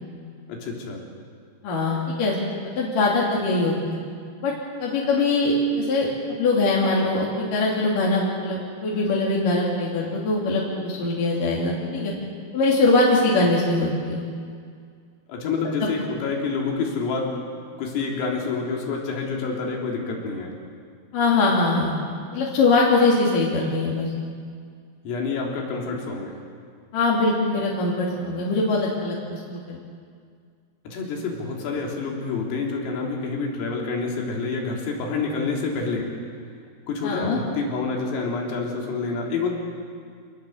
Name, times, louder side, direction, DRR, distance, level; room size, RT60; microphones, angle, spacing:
voice 1, 0.5-1.0 15.3-17.3 17.8-20.5 25.1-26.3 30.9-36.1 36.9-39.5, left 4 dB, 85° left, -1 dB, 6.2 m, -28 dB
voice 2, 1.6-2.4 2.8-4.0 4.4-4.5 4.8-12.1 12.5-14.2 15.8-15.9 21.1-21.9 22.3-24.1 26.9-29.8 37.0-37.4, left 2 dB, 45° left, -4 dB, 4.1 m, -22 dB
27.5 x 20.0 x 7.9 m, 2.1 s
omnidirectional pair, 5.8 m